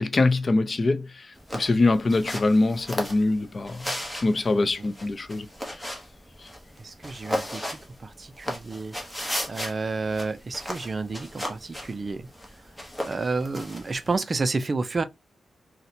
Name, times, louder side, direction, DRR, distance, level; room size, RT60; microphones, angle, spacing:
voice 1, 0.0-3.9 4.2-5.5 5.9-6.0 6.4-6.5, left 2 dB, 35° left, 0.4 m, -24 dB
sound 1, 1.4-14.2, equal, 5° left, 0.8 m, -36 dB
voice 2, 4.5-4.9 6.8-8.9 9.5-12.3 13.0-15.0, right 3 dB, 35° right, 0.3 m, -30 dB
4.0 x 2.1 x 2.7 m
wide cardioid pair, 145°, 0 cm